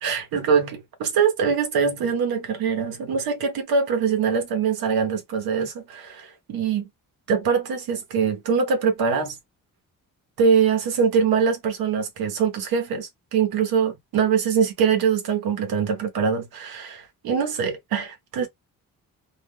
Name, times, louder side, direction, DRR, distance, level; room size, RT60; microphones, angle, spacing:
voice 1, 0.0-6.9 7.3-9.4 10.4-18.5, right 6 dB, 85° right, 1.0 m, -23 dB
2.5 x 2.0 x 3.5 m
cardioid pair, 105°, 35 cm